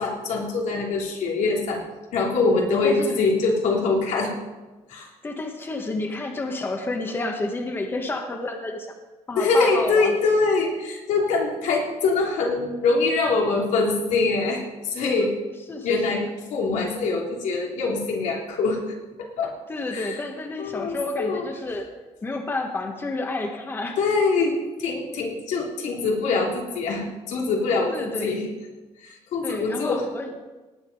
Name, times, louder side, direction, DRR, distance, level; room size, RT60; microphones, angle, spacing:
voice 1, 0.0-1.8 2.1-4.3 4.9-5.1 9.3-15.4 15.8-18.8 19.2-19.5 19.9-20.2 20.6-21.5 24.0-28.5 29.0-30.0, left 3 dB, 90° left, 0 dB, 3.0 m, -24 dB
voice 2, 2.7-3.1 5.2-8.9 9.3-10.1 15.7-16.2 19.7-21.9 22.2-24.0 27.9-28.4 29.4-30.4, left 2 dB, 20° left, 4 dB, 1.2 m, -30 dB
18.5 x 8.3 x 5.4 m, 1.2 s
cardioid pair, 170°, 12 cm